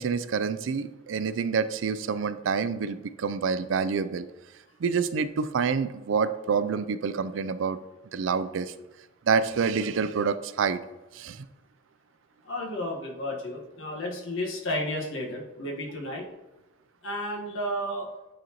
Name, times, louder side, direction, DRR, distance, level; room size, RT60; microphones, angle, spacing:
voice 1, 0.0-4.3 4.8-7.8 8.1-8.7 9.3-10.8 11.1-11.5, right 5 dB, 80° right, 13 dB, 0.4 m, -27 dB
voice 2, 12.4-16.2 17.0-18.2, left 1 dB, 90° left, -1 dB, 1.4 m, -32 dB
8.9 x 4.1 x 2.9 m, 1.0 s
head